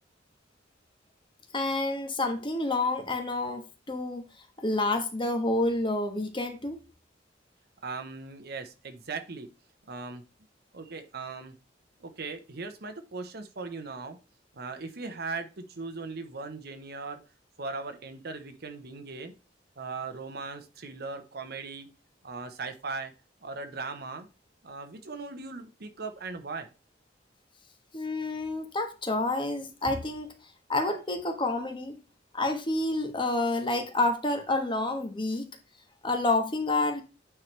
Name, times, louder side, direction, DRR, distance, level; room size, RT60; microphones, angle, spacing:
voice 1, 1.5-4.2 4.6-6.8 27.9-30.3 30.7-32.0 32.3-35.5 36.0-37.0, left 2 dB, 25° left, 1.4 m, -29 dB
voice 2, 7.8-9.5 9.9-10.2 10.7-11.5 12.0-14.2 14.5-17.2 17.6-19.3 19.8-21.9 22.2-23.1 23.4-24.3 24.6-26.7, right 4 dB, 60° right, 0.9 m, -38 dB
8.9 x 4.7 x 3.2 m
head